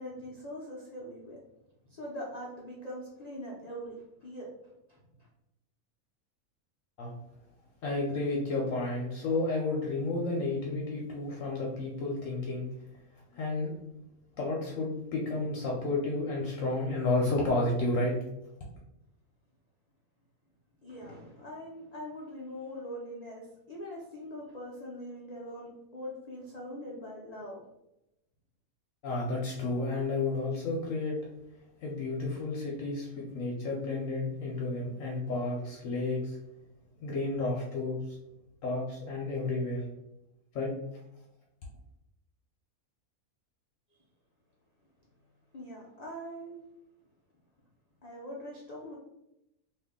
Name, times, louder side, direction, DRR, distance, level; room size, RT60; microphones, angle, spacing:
voice 1, 0.0-1.4 2.0-4.5 4.9-5.0 20.8-27.6 45.5-46.6 48.0-49.0, equal, 85° left, -3 dB, 0.3 m, -42 dB
voice 2, 7.8-12.7 13.3-13.7 14.4-18.1 29.0-31.2 31.8-36.4 37.0-38.0 38.6-39.8 40.5-40.7, left 2 dB, 65° left, -2 dB, 0.9 m, -31 dB
2.7 x 2.5 x 3.5 m, 0.87 s
omnidirectional pair, 1.6 m